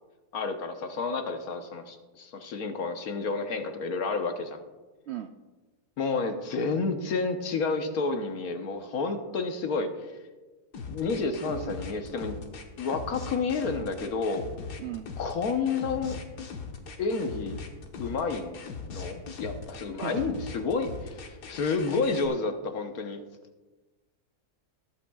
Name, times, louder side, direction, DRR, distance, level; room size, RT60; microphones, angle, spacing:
voice 1, 0.3-4.6 6.0-9.9 10.9-12.4 12.8-14.5 15.2-16.2 17.0-17.6 18.0-23.2, left 4 dB, 70° left, 6 dB, 1.4 m, -30 dB
sound 1, 10.7-22.3, left 5 dB, 90° left, 1.7 m, -40 dB
voice 2, 11.4-11.8 14.8-15.1 20.0-20.3, right 10 dB, 85° right, 8 dB, 0.5 m, -37 dB
20.5 x 8.7 x 2.3 m, 1.2 s
omnidirectional pair, 1.7 m